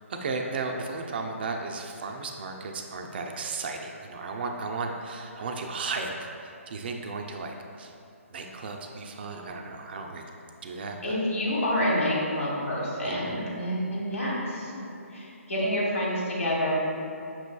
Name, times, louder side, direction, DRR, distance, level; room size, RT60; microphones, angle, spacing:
voice 1, 0.0-7.9 8.3-10.3 10.6-11.2 13.0-13.3, right 3 dB, 45° right, 3 dB, 0.3 m, -35 dB
voice 2, 11.0-14.9 15.1-16.7, left 1 dB, 70° left, -5 dB, 1.4 m, -28 dB
5.9 x 3.1 x 2.2 m, 2.7 s
figure-of-eight pair, 140°, 8 cm